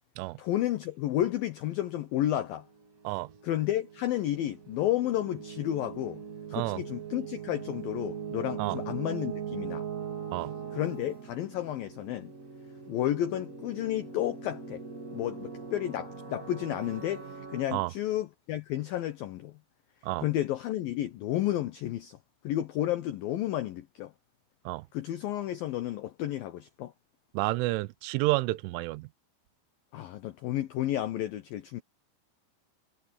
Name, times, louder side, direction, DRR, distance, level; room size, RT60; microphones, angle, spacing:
voice 1, 0.4-2.7 3.4-6.2 6.5-9.8 10.7-12.3 12.9-14.8 15.1-19.6 20.2-22.2 22.4-24.1 24.9-26.9 29.9-31.8, left 13 dB, 90° left, 2.0 m, -31 dB
sound 1, 2.7-17.6, right 7 dB, 45° right, 1.0 m, -41 dB
voice 2, 27.3-29.1, right 19 dB, 85° right, 3.2 m, -30 dB
omnidirectional pair, 5.6 m